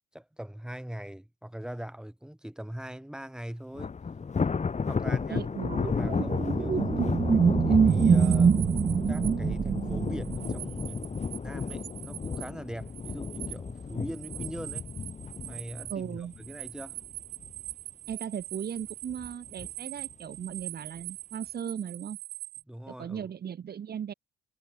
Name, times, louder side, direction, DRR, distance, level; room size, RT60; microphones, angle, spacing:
voice 1, 0.1-4.0 4.8-5.4 5.8-8.7 9.1-14.9 15.4-17.0 22.7-23.3, right 1 dB, 5° right, 4.6 m, -42 dB
Thunder, 3.7-17.0 17.4-17.7 18.1-18.2 19.1-19.7, left 5 dB, 35° left, 4.7 m, -33 dB
voice 2, 5.3-5.9 15.9-16.3 18.1-22.2 22.9-24.1, right 8 dB, 55° right, 1.9 m, -37 dB
sound 1, 5.7-10.7, right 6 dB, 35° right, 1.1 m, -24 dB
sound 2, 7.9-9.3 9.7-12.5 12.8-22.6, right 15 dB, 90° right, 2.4 m, -43 dB
cardioid pair, 90°, 20 cm